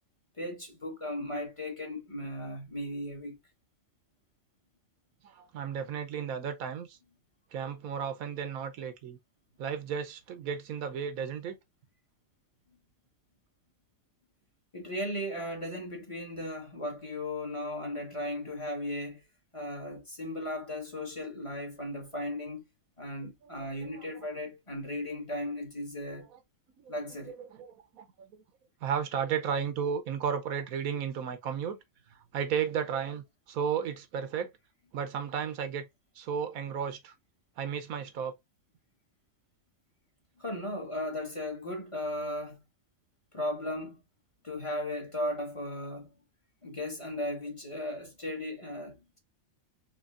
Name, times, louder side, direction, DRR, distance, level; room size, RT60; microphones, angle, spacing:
voice 1, 0.4-3.4 14.7-19.2 19.5-22.6 23.0-26.3 26.9-27.3 40.4-42.6 43.3-44.0 44.4-46.1 46.6-49.2, left 1 dB, 25° left, 1.4 m, -36 dB
voice 2, 5.2-7.0 7.5-9.2 9.6-11.5 23.6-24.0 26.8-26.9 27.5-27.7 27.9-28.3 28.8-31.8 32.3-34.5 34.9-35.9 36.2-37.1 37.6-38.3, right 7 dB, 85° right, 1.2 m, -33 dB
4.3 x 3.2 x 2.5 m
omnidirectional pair, 1.4 m